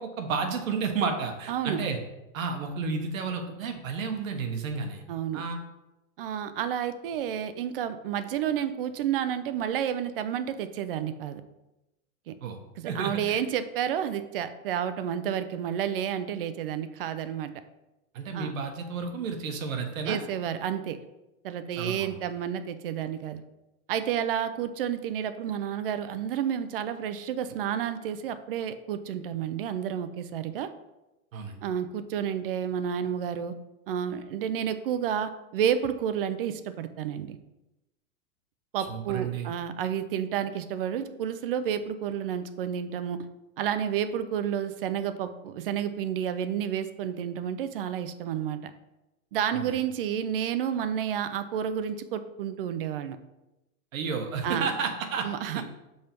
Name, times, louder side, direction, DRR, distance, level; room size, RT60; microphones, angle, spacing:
voice 1, 0.0-2.0 2.3-5.0 5.3-5.6 12.4-12.6 12.8-13.4 18.1-20.2 21.8-22.2 31.3-31.6 38.8-39.5 49.5-49.7 53.9-55.3 55.5-55.6, right 5 dB, 70° right, 5 dB, 1.3 m, -31 dB
voice 2, 1.5-1.8 5.1-5.4 6.2-11.4 12.3-12.4 12.8-17.5 18.3-18.5 20.1-21.0 21.4-23.4 23.9-30.7 31.6-33.5 33.9-37.4 38.7-43.2 43.6-48.7 49.3-53.2 54.4-54.7 55.2-55.6, right 9 dB, 45° right, 11 dB, 0.4 m, -30 dB
5.5 x 4.4 x 5.2 m, 0.97 s
supercardioid pair, 170°, 41 cm